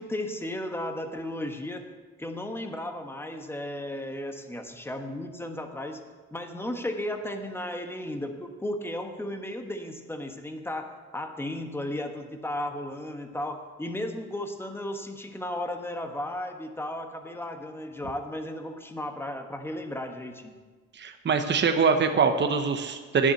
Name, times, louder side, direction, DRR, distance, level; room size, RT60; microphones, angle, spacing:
voice 1, 0.0-1.9 2.2-6.0 6.3-20.5, left 1 dB, 10° left, 5 dB, 1.2 m, -35 dB
voice 2, 20.9-23.3, right 5 dB, 35° right, 6 dB, 0.9 m, -23 dB
9.9 x 7.3 x 7.8 m, 1.4 s
cardioid pair, 90°, 30 cm